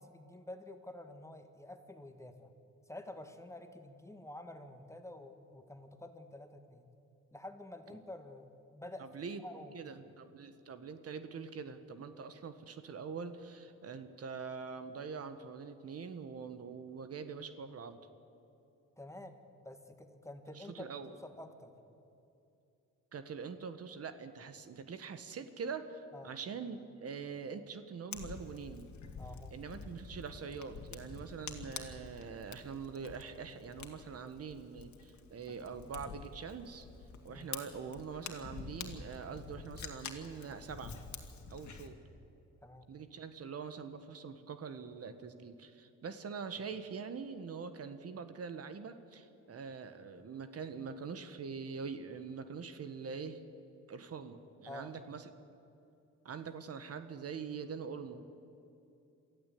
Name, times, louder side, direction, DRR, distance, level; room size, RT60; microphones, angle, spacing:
voice 1, 0.0-2.5 2.9-6.9 7.3-10.0 19.0-21.7 26.1-26.4 29.2-30.0 37.3-37.5 41.8-42.0 42.6-42.9 54.7-55.1, left 1 dB, 10° left, 6 dB, 1.7 m, -49 dB
voice 2, 9.0-9.4 9.7-18.0 20.5-21.1 23.1-28.9 29.5-36.9 37.2-40.9 41.5-42.0 42.9-53.4 53.9-55.3 56.2-58.4, right 5 dB, 50° right, 10 dB, 1.4 m, -44 dB
Fire, 28.1-41.9, left 6 dB, 70° left, 2.1 m, -48 dB
23.5 x 14.0 x 8.6 m, 2.7 s
cardioid pair, 90°, 30 cm